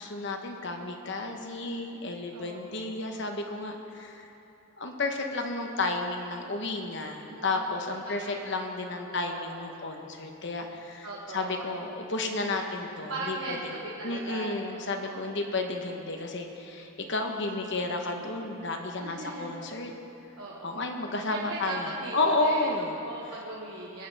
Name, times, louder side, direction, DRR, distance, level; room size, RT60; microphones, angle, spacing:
voice 1, 0.0-4.3 4.8-13.7 14.0-19.9 20.6-21.9 22.1-23.0, left 2 dB, 55° left, 4 dB, 1.0 m, -32 dB
voice 2, 2.3-3.3 7.3-7.8 8.0-8.4 8.9-9.5 11.0-11.9 13.1-15.3 19.0-19.5 20.4-22.7 23.0-24.1, right 2 dB, 85° right, -5 dB, 1.3 m, -39 dB
20.5 x 9.5 x 3.5 m, 2.9 s
head